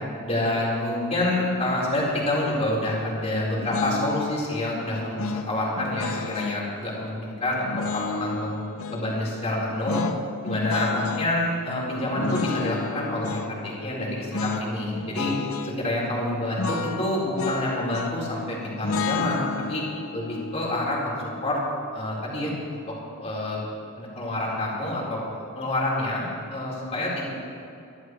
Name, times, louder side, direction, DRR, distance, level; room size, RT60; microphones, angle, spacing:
voice 1, 0.2-8.6 8.9-10.0 10.4-15.3 15.6-19.8 20.1-21.2 21.4-21.6 21.9-22.8 23.2-23.6 24.0-25.2 25.5-27.3, left 1 dB, 30° left, -5 dB, 4.2 m, -27 dB
sound 1, 3.7-4.4 5.2-6.7 7.7-9.1 9.8-11.3 12.2-13.5 14.3-14.7 14.9-15.8 16.6-18.3 18.8-21.9, left 4 dB, 65° left, 0.7 m, -31 dB
26.0 x 13.0 x 3.2 m, 2.6 s
head